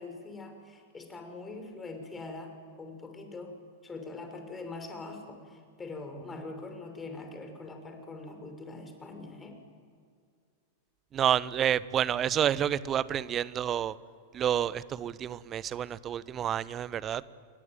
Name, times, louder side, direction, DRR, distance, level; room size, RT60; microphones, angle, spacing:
voice 1, 0.0-2.5 2.8-3.5 3.8-9.6, left 3 dB, 15° left, 5 dB, 5.9 m, -43 dB
voice 2, 11.1-13.9 14.3-17.2, right 10 dB, 30° right, 19 dB, 1.0 m, -29 dB
29.5 x 22.0 x 9.2 m, 2.2 s
figure-of-eight pair, 90°, 0 cm